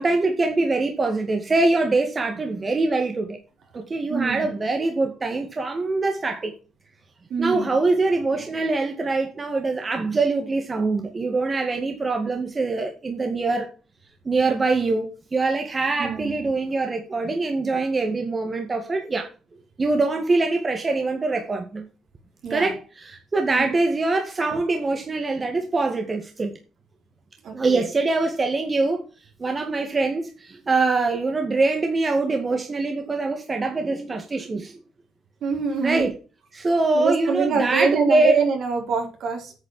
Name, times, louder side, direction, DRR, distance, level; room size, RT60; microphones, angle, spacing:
voice 1, 0.0-3.4 3.7-6.5 7.4-13.7 14.3-19.3 19.8-21.9 22.5-22.8 23.0-26.5 27.5-29.0 29.4-34.8 35.8-36.1 36.5-38.4, right 3 dB, 30° right, 2.2 m, -23 dB
voice 2, 4.1-4.5 7.3-7.8 16.0-16.5 22.4-22.7 23.5-23.7 24.5-24.6 27.4-27.9 35.4-36.1 36.9-39.5, right 5 dB, 70° right, 4.7 m, -25 dB
9.3 x 6.7 x 7.7 m
cardioid pair, 90°, 0 cm